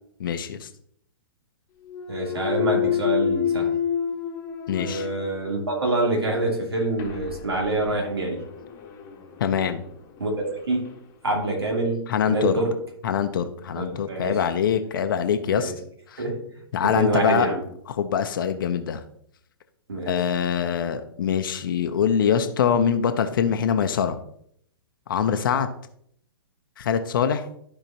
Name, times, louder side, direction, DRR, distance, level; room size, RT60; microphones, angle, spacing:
voice 1, 0.2-0.7 4.7-5.1 9.4-9.8 12.1-12.6 13.0-15.7 16.1-16.2 16.7-17.5 17.9-19.0 20.1-24.2 25.1-25.7 26.8-27.5, left 7 dB, 55° left, 7 dB, 0.8 m, -23 dB
Thump thud, 1.8-5.8 6.3-11.0, left 9 dB, 25° left, 1.2 m, -30 dB
voice 2, 2.1-3.7 4.8-8.4 10.2-10.9 11.2-12.0 12.3-12.7 13.7-14.4 15.5-15.7 16.2-16.4 16.8-17.6 19.9-20.2, right 2 dB, 80° right, 0 dB, 2.5 m, -26 dB
13.0 x 4.9 x 2.9 m, 0.68 s
figure-of-eight pair, 115°, 13 cm